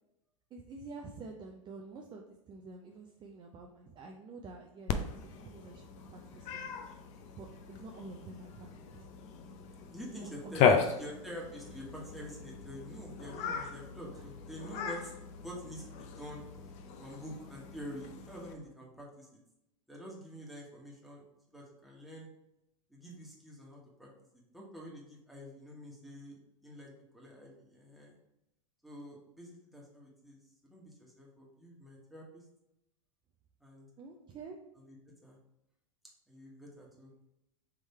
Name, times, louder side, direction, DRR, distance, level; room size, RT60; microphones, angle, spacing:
voice 1, 0.5-6.7 7.4-9.1 10.1-10.6 14.1-14.2 34.0-34.6, right 3 dB, 25° right, 1 dB, 0.5 m, -49 dB
Cat, 4.9-18.5, left 6 dB, 40° left, 0.5 m, -36 dB
voice 2, 9.9-15.1 15.4-16.4 17.0-19.4 19.9-22.3 22.9-28.2 28.8-32.4 33.6-33.9 34.8-35.0 35.2-35.4 36.3-37.1, equal, ahead, -4 dB, 1.3 m, -47 dB
3.7 x 3.1 x 4.2 m, 0.86 s
hypercardioid pair, 100°, 17 cm